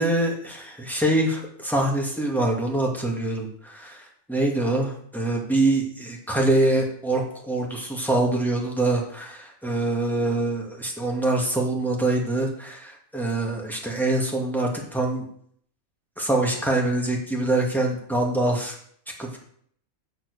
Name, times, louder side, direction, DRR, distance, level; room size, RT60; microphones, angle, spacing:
voice 1, 0.0-15.3 16.2-18.8 19.2-19.4, right 2 dB, ahead, -1 dB, 2.2 m, -24 dB
7.6 x 7.0 x 6.8 m, 0.62 s
omnidirectional pair, 1.4 m